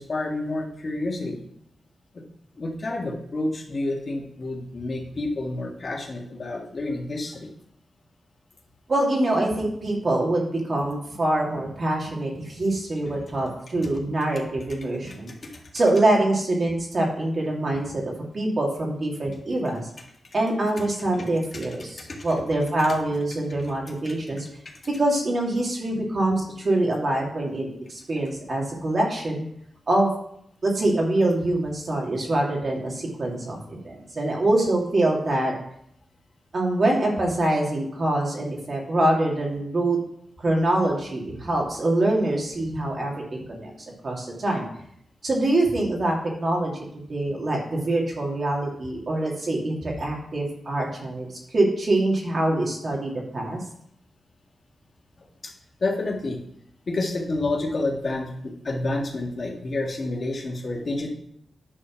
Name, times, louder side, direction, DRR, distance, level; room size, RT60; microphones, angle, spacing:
voice 1, 0.0-1.4 2.1-2.2 2.6-7.5 15.1-15.5 22.1-22.2 24.0-24.1 55.4-55.5 55.8-56.4 56.9-61.1, left 2 dB, 50° left, -1 dB, 1.9 m, -29 dB
voice 2, 8.9-15.3 15.7-18.0 18.3-19.9 20.3-24.4 25.0-29.4 29.9-30.1 30.6-35.5 36.5-40.0 40.4-43.7 44.0-44.7 45.2-51.3 51.5-53.6, right 1 dB, 50° right, -1 dB, 2.5 m, -24 dB
9.8 x 4.3 x 5.9 m, 0.71 s
cardioid pair, 80°, 0 cm